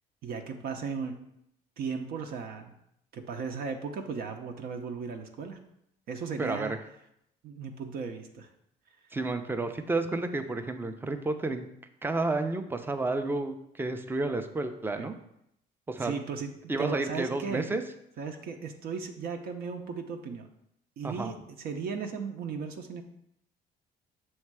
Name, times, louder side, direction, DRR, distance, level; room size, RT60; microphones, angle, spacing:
voice 1, 0.2-1.2 1.8-2.7 3.1-5.6 6.1-6.8 7.4-8.5 15.0-15.1 16.0-17.7 18.2-20.5 21.0-23.0, right 5 dB, 60° right, 4 dB, 0.8 m, -36 dB
voice 2, 6.4-6.8 9.1-11.7 12.0-15.2 15.9-16.2 16.7-17.8 21.0-21.3, right 2 dB, 10° right, 7 dB, 0.5 m, -31 dB
6.5 x 3.2 x 4.6 m, 0.76 s
cardioid pair, 110°, 17 cm